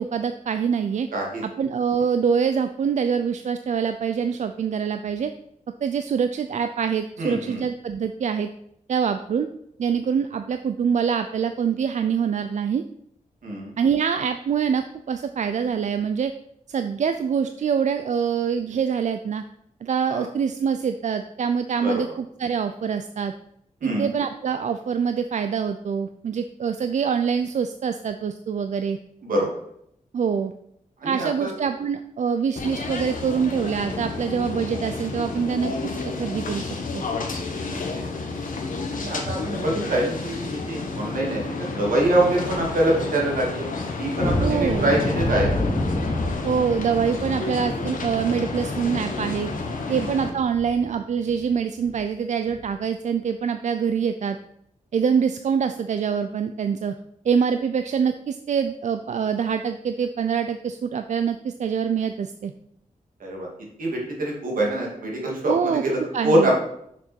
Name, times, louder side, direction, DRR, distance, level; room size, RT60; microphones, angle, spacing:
voice 1, 0.0-1.1 1.6-5.3 5.8-8.5 8.9-9.5 9.8-12.8 13.8-16.3 16.7-19.4 19.8-22.1 22.4-23.3 23.8-29.0 30.1-30.5 31.0-35.7 36.2-36.7 36.9-37.0 44.4-44.9 46.4-49.5 49.9-54.4 54.9-56.9 57.2-62.5 65.5-65.8 66.1-66.5, right 7 dB, 60° right, 9 dB, 0.4 m, -25 dB
voice 2, 1.1-1.4 7.2-7.6 13.4-13.7 20.1-20.3 21.8-22.0 23.8-24.1 29.2-29.5 31.0-31.5 37.6-37.8 38.9-43.7 44.0-45.5 49.9-50.1 63.2-63.5 63.8-66.6, right 1 dB, 80° right, -1 dB, 2.4 m, -24 dB
sound 1, 32.6-50.3, left 3 dB, 75° left, 1.3 m, -31 dB
sound 2, 44.1-50.9 51.3-51.4 51.8-52.0 52.5-52.6, left 1 dB, 45° left, 1.6 m, -29 dB
6.8 x 6.1 x 4.4 m, 0.73 s
wide cardioid pair, 140°, 14 cm